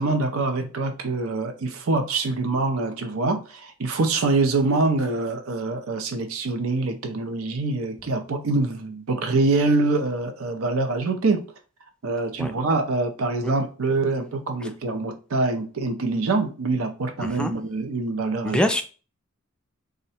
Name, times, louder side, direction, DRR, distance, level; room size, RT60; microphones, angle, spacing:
voice 1, 0.0-11.4 12.0-18.6, right 3 dB, 70° right, 0.6 m, -25 dB
voice 2, 17.2-17.5 18.4-18.8, left 1 dB, 5° left, 0.4 m, -25 dB
3.7 x 2.2 x 4.2 m
head